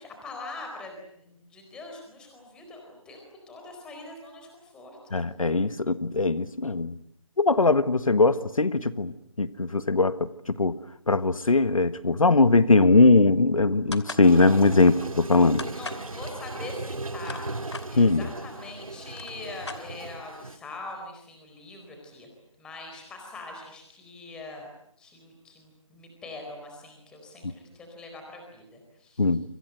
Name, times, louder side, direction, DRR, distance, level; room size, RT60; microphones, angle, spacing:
voice 1, 0.0-5.0 15.7-17.5 17.9-22.3 22.6-24.7 25.0-29.2, left 2 dB, 5° left, 2 dB, 4.2 m, -42 dB
voice 2, 5.1-7.0 7.4-9.1 9.4-10.7 11.1-15.6 18.0-18.3 29.2-29.4, left 3 dB, 80° left, 13 dB, 1.5 m, -20 dB
sound 1, 13.9-14.3 15.6-16.1 17.0-17.9 18.7-18.8 19.0-20.2, left 4 dB, 55° left, 2.7 m, -38 dB
Toilet flush, 14.2-20.6, right 2 dB, 90° right, 2.2 m, -37 dB
28.5 x 25.5 x 7.9 m, 0.73 s
figure-of-eight pair, 165°, 17 cm